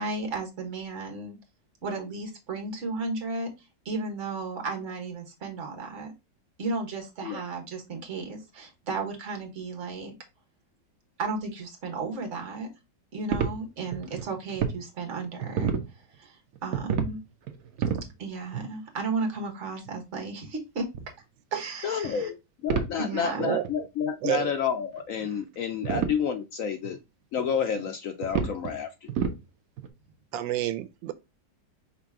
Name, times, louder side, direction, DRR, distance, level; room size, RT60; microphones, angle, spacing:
voice 1, 0.0-1.4 1.8-3.5 3.8-6.1 6.6-10.1 11.2-12.7 13.1-15.7 16.2-16.4 16.6-17.2 18.2-20.9 21.5-22.3 23.0-23.5, right 3 dB, 45° right, 1.6 m, -34 dB
sound 1, 13.3-14.8 15.2-15.9 16.6-17.1 17.5-18.1 18.5-18.7 19.9-20.0 20.9-21.1 22.0-22.2 22.7-22.9 23.3-23.4 23.6-23.7 24.3-24.4 25.0-25.4 25.8-26.2 26.8-27.0 27.4-27.5 28.2-28.7 29.1-29.4 29.8-29.9, right 7 dB, 60° right, 1.0 m, -29 dB
voice 2, 21.8-27.0 27.3-29.1, left 7 dB, 80° left, 0.7 m, -30 dB
voice 3, 30.3-31.1, right 12 dB, 90° right, 1.3 m, -29 dB
5.0 x 3.0 x 3.5 m
omnidirectional pair, 2.0 m